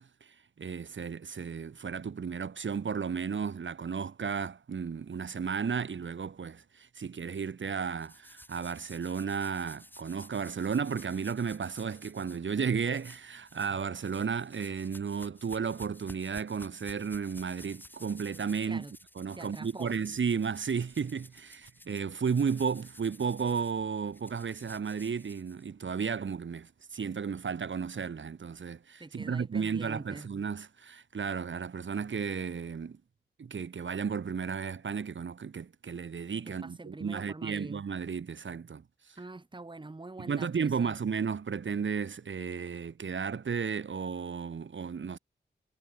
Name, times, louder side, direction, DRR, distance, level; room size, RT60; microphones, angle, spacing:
voice 1, 0.0-18.8 19.2-33.0 33.4-38.8 39.1-39.2 40.2-45.2, right 6 dB, 85° right, 2.3 m, -33 dB
sound 1, 8.0-12.4 12.9-13.7 14.0-25.9, left 1 dB, 10° left, 6.9 m, -54 dB
voice 2, 19.3-19.9 29.0-30.3 36.4-37.8 39.2-41.0, right 2 dB, 25° right, 1.6 m, -45 dB
wide cardioid pair, 90°, 19 cm